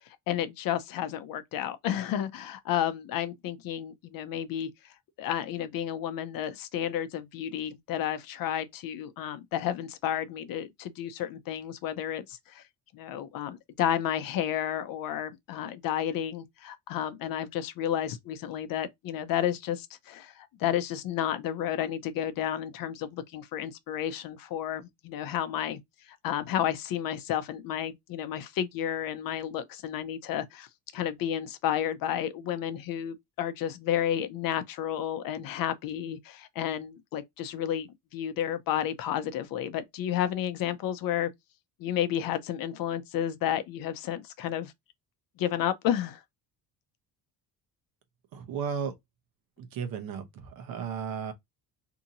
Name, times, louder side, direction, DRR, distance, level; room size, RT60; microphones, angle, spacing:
voice 1, 0.3-4.7 5.2-12.6 12.9-25.8 26.1-30.7 30.9-41.3 41.8-44.7 45.4-46.2, left 10 dB, 60° left, 0.5 m, -31 dB
voice 2, 48.3-48.9 49.6-51.3, right 7 dB, 65° right, 0.8 m, -34 dB
2.8 x 2.5 x 2.7 m
cardioid pair, 145°, 38 cm